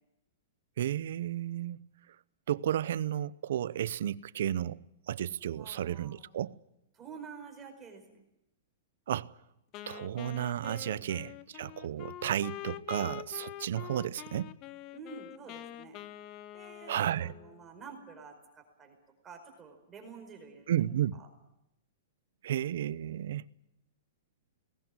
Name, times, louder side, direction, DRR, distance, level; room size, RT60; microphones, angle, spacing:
voice 1, 0.8-1.9 2.5-6.6 9.1-9.3 9.9-14.5 16.9-17.3 20.7-21.2 22.4-23.4, right 11 dB, 65° right, 0.7 m, -33 dB
voice 2, 5.6-6.2 6.9-8.0 14.9-16.0 16.5-19.0 19.2-20.7 21.1-21.3, right 5 dB, 15° right, 4.6 m, -49 dB
Wind instrument woodwind instrument, 9.7-17.6, left 13 dB, 30° left, 0.8 m, -45 dB
19.5 x 17.5 x 9.7 m
hypercardioid pair, 160°, 0 cm